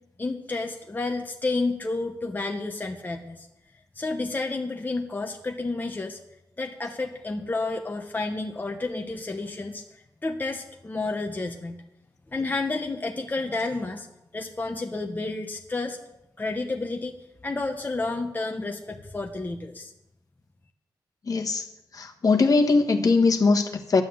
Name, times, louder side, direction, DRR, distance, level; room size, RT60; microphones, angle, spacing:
voice 1, 0.2-3.5 3.9-6.2 6.6-11.8 12.3-14.1 14.3-16.0 16.4-17.2 17.4-19.9, left 3 dB, 20° left, 3 dB, 1.0 m, -30 dB
voice 2, 21.3-21.6 21.9-24.0, left 3 dB, 50° left, 3 dB, 1.4 m, -21 dB
11.0 x 9.2 x 7.9 m, 0.89 s
wide cardioid pair, 125°, 8 cm